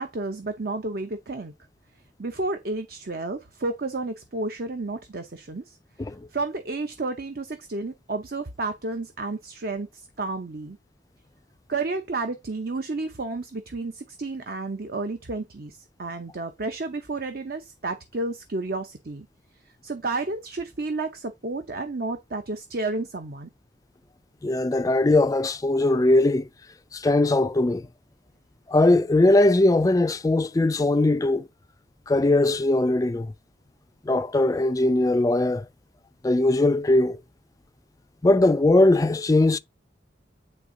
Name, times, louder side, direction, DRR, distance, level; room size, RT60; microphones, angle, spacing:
voice 1, 0.0-1.5 2.2-5.8 6.3-10.8 11.7-19.3 19.8-23.5, right 3 dB, 55° right, 0.8 m, -31 dB
voice 2, 24.4-26.5 26.9-27.9 28.7-31.5 32.1-33.3 34.1-35.7 36.2-37.2 38.2-39.6, left 2 dB, 20° left, 0.3 m, -20 dB
9.0 x 3.5 x 3.8 m
head